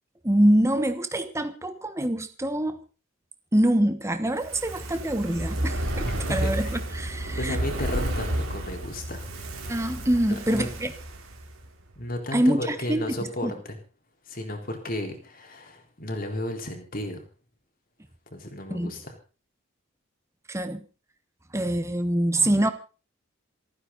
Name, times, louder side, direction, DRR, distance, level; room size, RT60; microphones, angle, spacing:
voice 1, 0.2-2.8 3.5-7.6 9.7-10.9 12.3-13.0 13.4-13.5 18.7-18.9 20.5-20.8 21.5-22.7, right 1 dB, 15° right, 1.2 m, -25 dB
Fire, 4.3-11.7 12.0-12.1, right 1 dB, 85° right, 3.9 m, -31 dB
voice 2, 6.0-6.7 7.4-9.3 10.3-10.7 12.0-13.8 14.3-17.2 18.3-19.1, left 1 dB, 45° left, 4.0 m, -33 dB
28.5 x 9.6 x 4.1 m
head